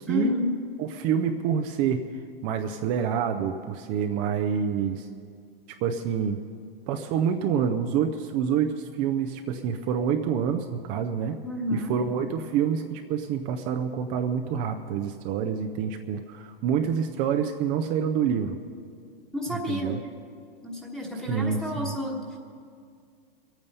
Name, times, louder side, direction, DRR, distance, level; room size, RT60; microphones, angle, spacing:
voice 1, 0.1-0.5 11.4-11.9 19.3-19.9 20.6-22.4, left 1 dB, ahead, -2 dB, 1.2 m, -30 dB
voice 2, 0.8-2.1 2.4-5.1 5.8-6.4 6.9-11.4 11.7-18.6 19.5-20.0 21.3-21.9, right 7 dB, 25° right, 5 dB, 0.4 m, -27 dB
22.5 x 8.9 x 5.5 m, 2.2 s
hypercardioid pair, 150°, 29 cm